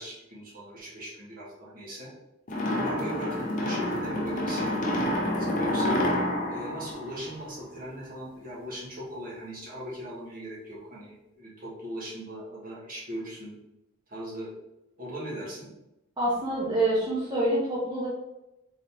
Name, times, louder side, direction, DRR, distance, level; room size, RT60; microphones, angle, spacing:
voice 1, 0.0-2.1 2.8-6.0 6.5-13.6 14.1-14.5 15.0-15.7, equal, 45° right, -5 dB, 1.3 m, -39 dB
sound 1, 2.5-7.8, left 1 dB, 40° left, 0.6 m, -28 dB
voice 2, 16.2-18.1, right 1 dB, 20° right, -8 dB, 0.9 m, -26 dB
3.9 x 3.5 x 2.8 m, 0.90 s
head